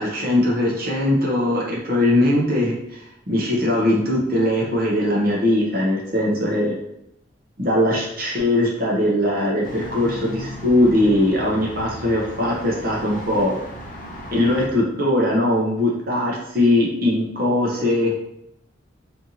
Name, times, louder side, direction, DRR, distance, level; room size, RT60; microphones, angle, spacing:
voice 1, 0.0-6.8 7.6-13.6 14.3-18.1, left 1 dB, 45° right, -4 dB, 0.8 m, -20 dB
sound 1, 9.6-14.7, left 1 dB, 40° left, 0.5 m, -36 dB
4.2 x 2.7 x 2.8 m, 0.80 s
head